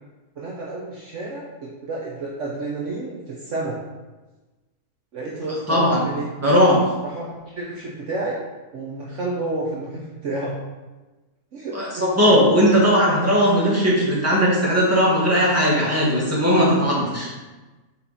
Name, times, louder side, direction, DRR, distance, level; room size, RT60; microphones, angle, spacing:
voice 1, 0.4-3.8 5.1-6.3 7.0-8.4 8.7-10.6 11.5-12.1, right 2 dB, 60° right, -4 dB, 1.1 m, -30 dB
voice 2, 5.7-6.1 6.4-6.8 11.7-11.9 12.1-17.3, equal, 10° right, -6 dB, 1.6 m, -18 dB
5.7 x 4.3 x 4.1 m, 1.2 s
omnidirectional pair, 1.6 m